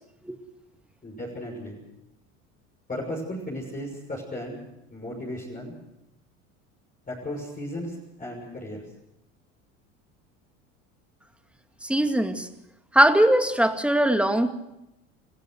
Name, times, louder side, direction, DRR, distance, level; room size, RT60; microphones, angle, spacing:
voice 1, 1.0-1.8 2.9-4.6 4.9-5.7 7.1-8.8, left 1 dB, 20° left, -3 dB, 6.5 m, -35 dB
voice 2, 11.8-12.5 12.9-14.5, right 1 dB, 5° right, 7 dB, 2.1 m, -20 dB
29.0 x 15.5 x 6.5 m, 0.86 s
hypercardioid pair, 80°, 38 cm